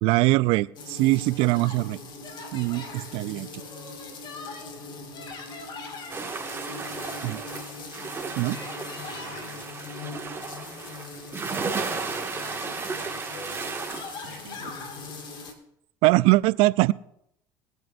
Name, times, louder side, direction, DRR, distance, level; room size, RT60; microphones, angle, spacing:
voice 1, 0.0-2.0 2.5-3.6 7.2-7.4 8.4-8.6 16.0-16.9, right 20 dB, 65° right, 20 dB, 0.4 m, -22 dB
sound 1, 0.8-15.5, left 4 dB, 50° left, 2.1 m, -40 dB
sound 2, 6.1-15.1, right 4 dB, 25° right, 1.9 m, -34 dB
voice 2, 6.9-7.5 9.0-9.9 10.5-11.2 11.6-13.7 14.3-14.7, left 1 dB, 90° left, 1 dB, 4.3 m, -48 dB
20.5 x 9.4 x 2.6 m, 0.77 s
hypercardioid pair, 80°, 10 cm